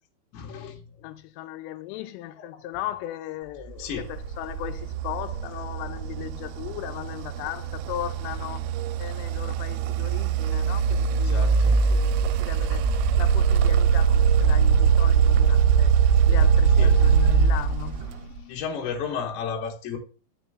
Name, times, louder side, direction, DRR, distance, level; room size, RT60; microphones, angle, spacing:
voice 1, 0.3-0.9 2.4-2.5 3.8-4.0 11.2-11.7 16.8-17.3 18.5-20.0, left 6 dB, 70° left, 2.6 m, -33 dB
voice 2, 1.0-8.6 9.0-18.6, left 13 dB, 85° left, 3.2 m, -37 dB
sound 1, 3.9-18.4, right 6 dB, 90° right, 3.2 m, -22 dB
11.0 x 6.2 x 2.3 m
omnidirectional pair, 5.7 m